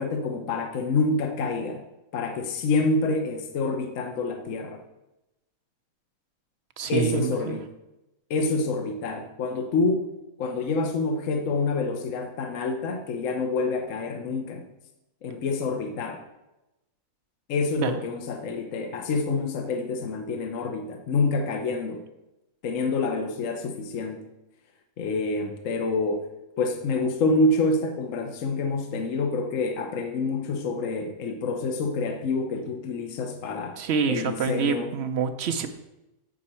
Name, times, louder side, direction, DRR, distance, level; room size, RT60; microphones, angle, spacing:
voice 1, 0.0-1.8 2.1-4.8 6.9-7.6 8.3-10.1 10.4-14.6 15.2-16.2 17.5-22.0 22.6-24.2 25.0-26.3 26.6-33.8 34.1-34.9, left 3 dB, 65° left, 5 dB, 1.1 m, -27 dB
voice 2, 6.8-7.6 17.8-18.0 33.8-35.7, right 6 dB, 65° right, 8 dB, 0.7 m, -27 dB
7.8 x 6.2 x 4.2 m, 0.95 s
omnidirectional pair, 1.5 m